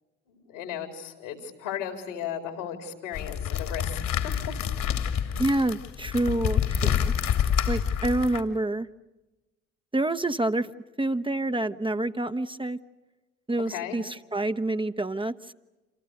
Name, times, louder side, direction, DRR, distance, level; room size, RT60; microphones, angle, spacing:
voice 1, 0.3-4.3 13.7-14.0, left 9 dB, 80° left, 6 dB, 4.4 m, -36 dB
sound 1, 3.1-8.4, left 8 dB, 60° left, 2.7 m, -27 dB
voice 2, 5.4-7.1 7.7-8.9 9.9-10.7 11.0-12.8 13.5-15.5, right 2 dB, 15° right, 9 dB, 1.0 m, -27 dB
28.0 x 28.0 x 6.6 m, 1.1 s
hypercardioid pair, 50°, 36 cm